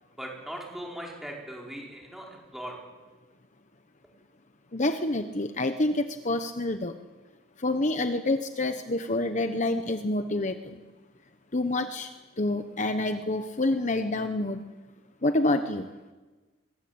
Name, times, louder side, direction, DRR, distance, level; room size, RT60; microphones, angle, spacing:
voice 1, 0.1-2.8, equal, ahead, -1 dB, 4.9 m, -39 dB
voice 2, 4.7-6.9 7.6-10.8 11.5-12.1 12.4-14.6 15.2-15.9, left 2 dB, 40° left, 8 dB, 1.0 m, -27 dB
23.5 x 22.5 x 8.7 m, 1.3 s
head